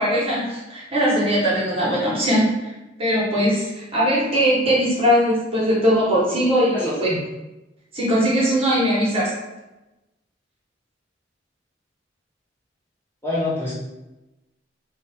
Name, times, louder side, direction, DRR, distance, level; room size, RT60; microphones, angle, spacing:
voice 1, 0.0-2.7 3.0-7.1 7.9-9.3, equal, 30° right, -6 dB, 1.2 m, -20 dB
voice 2, 6.7-7.2 13.2-13.7, left 2 dB, 15° left, -8 dB, 0.7 m, -26 dB
2.8 x 2.7 x 3.5 m, 1.0 s
head